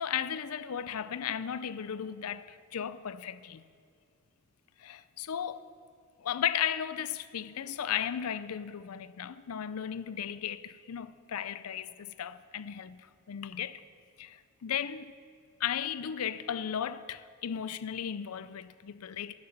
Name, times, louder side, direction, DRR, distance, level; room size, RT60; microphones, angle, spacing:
voice 1, 0.0-2.4 2.7-3.6 4.8-5.6 6.2-13.8 14.2-15.1 15.6-19.3, left 9 dB, 90° left, 0.5 m, -35 dB
11.0 x 7.9 x 6.9 m
head